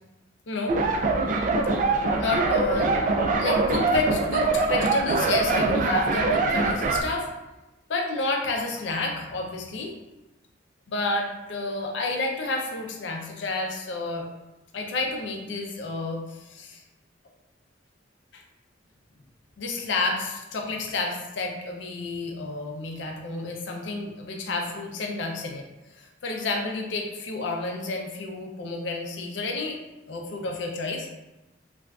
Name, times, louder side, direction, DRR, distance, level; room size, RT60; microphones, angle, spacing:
voice 1, 0.5-0.8 2.2-2.9 3.4-7.3 7.9-9.9 10.9-14.3 14.7-16.8 18.3-18.4 19.6-25.6 26.0-29.8 30.1-31.1, left 3 dB, 70° left, 2 dB, 0.5 m, -30 dB
sound 1, 0.7-7.0, right 3 dB, 45° right, 0.3 m, -23 dB
3.3 x 2.4 x 2.3 m, 1.0 s
head